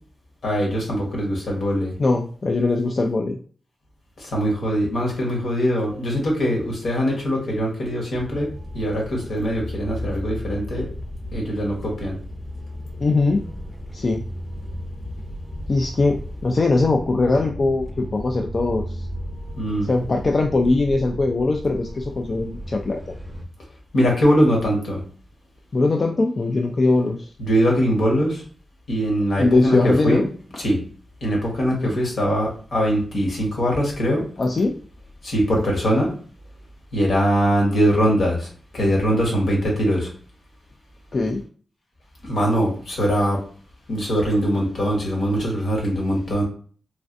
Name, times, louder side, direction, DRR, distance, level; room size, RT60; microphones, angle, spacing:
voice 1, 0.4-1.9 4.2-10.9 11.3-12.2 19.6-19.9 23.9-25.0 27.4-28.4 28.9-30.3 30.5-30.8 31.2-34.2 35.2-36.1 36.9-38.5 38.7-40.1 42.2-43.4 43.9-46.4, equal, 75° left, -1 dB, 1.2 m, -22 dB
voice 2, 2.0-3.4 13.0-13.4 13.9-14.2 15.7-19.1 19.8-23.1 25.7-27.3 29.3-30.3 31.7-31.9 34.4-34.7 41.1-41.4, left 3 dB, 45° left, 2 dB, 0.3 m, -21 dB
sound 1, 8.1-23.5, equal, 10° right, 0.6 m, -34 dB
3.2 x 2.4 x 2.5 m, 0.43 s
cardioid pair, 70°, 0 cm